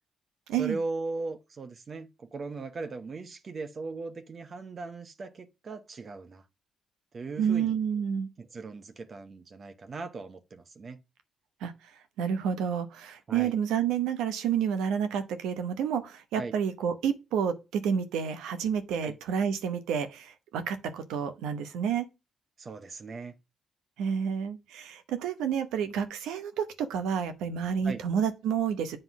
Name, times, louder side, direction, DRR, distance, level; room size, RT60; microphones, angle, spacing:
voice 1, 0.6-6.4 7.1-7.8 8.4-11.0 13.3-13.6 16.4-16.5 19.0-19.2 22.6-23.3 27.8-28.0, right 3 dB, 45° right, 0.9 m, -38 dB
voice 2, 7.4-8.3 11.6-11.7 12.2-22.1 24.0-29.0, right 7 dB, 90° right, 0.9 m, -29 dB
7.9 x 3.8 x 6.0 m
supercardioid pair, 65°, 0 cm